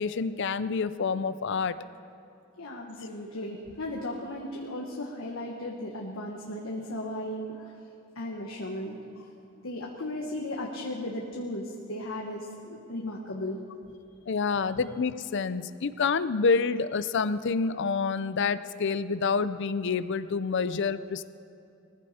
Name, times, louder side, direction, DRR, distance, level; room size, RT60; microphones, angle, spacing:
voice 1, 0.0-1.8 14.3-21.2, left 5 dB, 60° left, 14 dB, 0.5 m, -28 dB
voice 2, 2.6-7.9 8.1-9.3 9.6-13.6 14.8-14.9, left 1 dB, 75° left, -1 dB, 1.5 m, -36 dB
21.0 x 15.0 x 4.3 m, 2.7 s
head